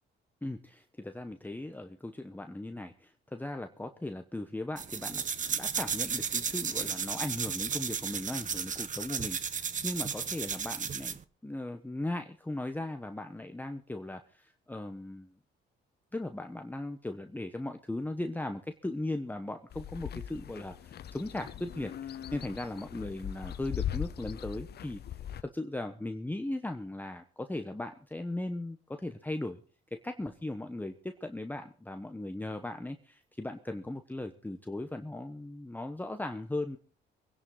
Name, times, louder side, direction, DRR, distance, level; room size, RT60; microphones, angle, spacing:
voice 1, 0.4-5.2 5.5-11.1 11.4-15.3 16.1-25.0 25.4-29.6 29.9-36.8, left 1 dB, 10° left, 6 dB, 1.1 m, -38 dB
sound 1, 4.8-11.2, right 6 dB, 40° right, 1.0 m, -34 dB
sound 2, 19.7-25.4, left 10 dB, 55° left, 0.7 m, -40 dB
23.5 x 11.0 x 3.9 m, 0.41 s
cardioid pair, 90°, 20 cm